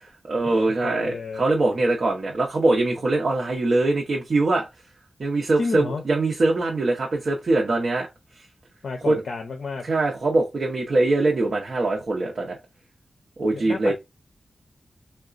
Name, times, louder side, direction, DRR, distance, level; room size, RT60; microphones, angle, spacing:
voice 1, 0.0-4.7 5.2-8.1 9.0-9.2 9.8-12.6 13.4-13.9, right 2 dB, 55° right, 0.7 m, -22 dB
voice 2, 0.8-1.4 5.6-6.0 8.8-9.9 13.5-13.9, left 4 dB, 85° left, 0.5 m, -31 dB
3.7 x 2.2 x 2.4 m
wide cardioid pair, 140°, 0 cm